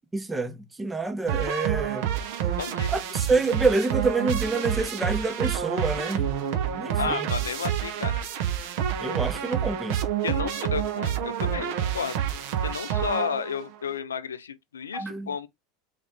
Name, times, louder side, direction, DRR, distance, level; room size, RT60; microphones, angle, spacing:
voice 1, 0.1-2.1 2.9-6.3 6.8-7.3 9.0-10.0 14.9-15.3, right 3 dB, 15° right, 0.6 m, -27 dB
sound 1, 1.3-13.7, right 9 dB, 60° right, 0.5 m, -28 dB
voice 2, 2.5-2.9 7.0-8.2 10.2-12.2 12.6-15.5, left 7 dB, 85° left, 0.4 m, -32 dB
3.2 x 2.4 x 3.2 m
hypercardioid pair, 85°, 0 cm